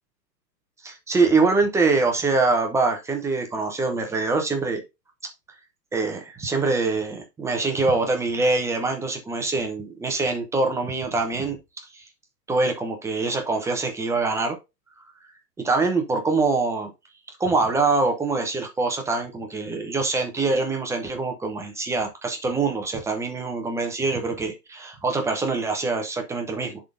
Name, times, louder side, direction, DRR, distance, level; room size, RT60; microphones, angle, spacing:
voice 1, 0.8-4.8 5.9-11.6 11.9-12.0 12.5-14.6 15.6-16.9 17.4-26.8, right 3 dB, 5° right, 0.7 m, -24 dB
10.5 x 3.7 x 2.6 m
hypercardioid pair, 135°, 49 cm